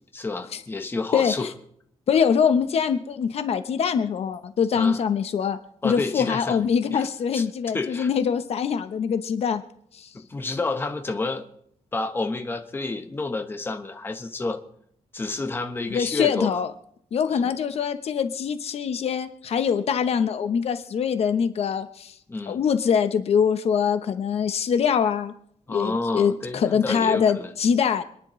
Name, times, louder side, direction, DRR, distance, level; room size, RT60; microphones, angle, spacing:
voice 1, 0.1-1.5 4.7-5.0 5.8-6.6 6.9-7.1 7.3-7.4 7.7-8.1 10.1-11.4 11.9-14.6 15.1-16.6 17.3-17.5 22.3-22.6 25.7-27.5, left 3 dB, 20° left, 6 dB, 1.0 m, -29 dB
voice 2, 1.1-1.5 2.1-5.6 5.8-9.6 9.9-10.1 15.9-16.7 17.1-22.1 22.5-25.3 25.7-28.0, left 7 dB, 60° left, 10 dB, 0.9 m, -23 dB
26.5 x 10.5 x 3.1 m, 0.67 s
wide cardioid pair, 170°, 12 cm